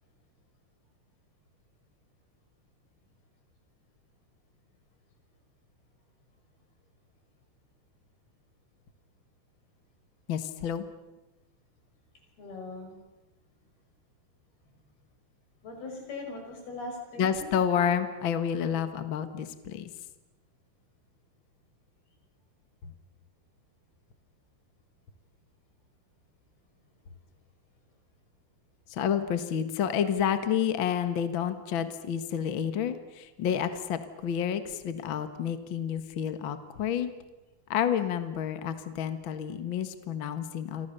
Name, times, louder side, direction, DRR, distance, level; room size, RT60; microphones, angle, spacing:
voice 1, 10.3-10.8 17.2-19.9 22.8-22.9 28.9-37.1 37.7-40.9, left 8 dB, 50° left, 10 dB, 1.5 m, -29 dB
voice 2, 12.4-13.0 15.6-17.5 19.1-19.2, left 2 dB, 80° left, 2 dB, 7.8 m, -40 dB
29.5 x 24.5 x 6.9 m, 1.1 s
omnidirectional pair, 4.4 m